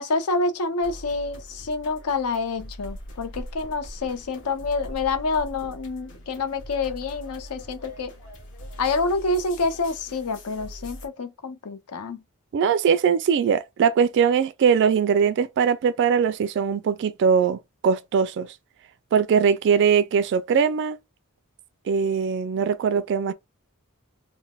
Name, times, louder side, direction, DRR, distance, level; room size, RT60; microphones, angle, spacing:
voice 1, 0.0-8.1 8.8-12.2, left 3 dB, 85° left, 0.6 m, -27 dB
sound 1, 0.8-11.1, equal, 60° left, 1.2 m, -42 dB
voice 2, 12.5-18.5 19.1-21.0 21.9-23.3, right 6 dB, 55° right, 0.3 m, -21 dB
3.8 x 2.0 x 2.2 m
head